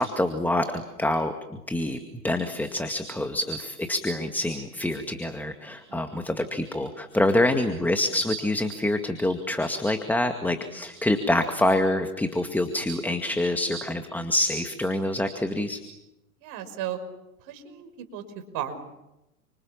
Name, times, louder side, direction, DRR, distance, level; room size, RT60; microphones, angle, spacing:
voice 1, 0.0-2.0 2.2-15.8, left 1 dB, 5° left, 6 dB, 2.1 m, -26 dB
voice 2, 16.4-17.0 17.4-18.2 18.5-18.8, right 11 dB, 45° right, 8 dB, 5.7 m, -35 dB
30.0 x 26.0 x 7.3 m, 0.92 s
hypercardioid pair, 100°, 46 cm